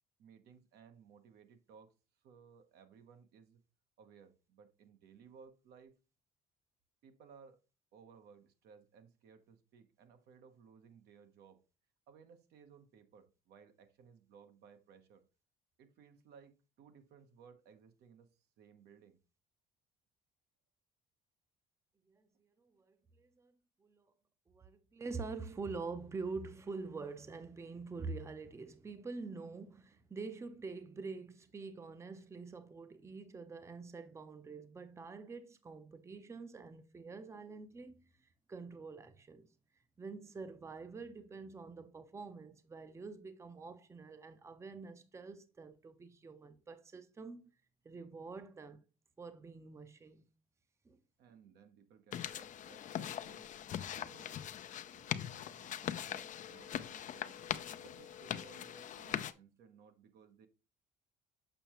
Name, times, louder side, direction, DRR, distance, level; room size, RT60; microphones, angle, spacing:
voice 1, 0.2-1.9 2.2-3.6 4.0-6.0 7.0-7.6 7.9-11.6 12.1-15.2 15.8-19.2 51.2-53.5 53.9-54.4 54.9-57.4 57.8-60.5, right 6 dB, 75° right, 1.0 m, -60 dB
voice 2, 22.1-23.5 23.8-24.1 24.5-38.0 38.5-39.5 40.0-47.4 47.8-48.8 49.2-50.2 50.9-51.0, right 4 dB, 15° right, 0.6 m, -46 dB
sound 1, 52.1-59.3, left 10 dB, 50° left, 0.5 m, -41 dB
6.8 x 5.5 x 3.0 m
cardioid pair, 110°, 17 cm